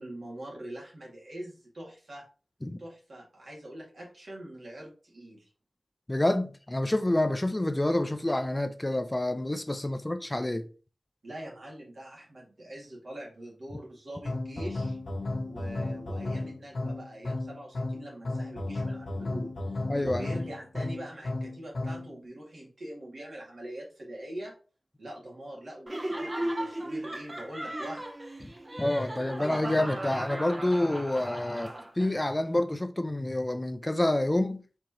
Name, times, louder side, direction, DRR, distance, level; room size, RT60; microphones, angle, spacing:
voice 1, 0.0-2.2 2.8-5.5 11.2-15.0 15.4-24.6 25.0-28.1, right 1 dB, 75° right, 2.1 m, -43 dB
voice 2, 6.1-10.7 19.9-20.3 28.8-34.6, left 1 dB, 20° left, 0.4 m, -28 dB
sound 1, 14.2-22.1, left 2 dB, 75° left, 0.9 m, -34 dB
Laughter, 25.9-32.2, right 1 dB, 25° right, 0.6 m, -36 dB
4.6 x 3.7 x 2.9 m
wide cardioid pair, 100°, 0 cm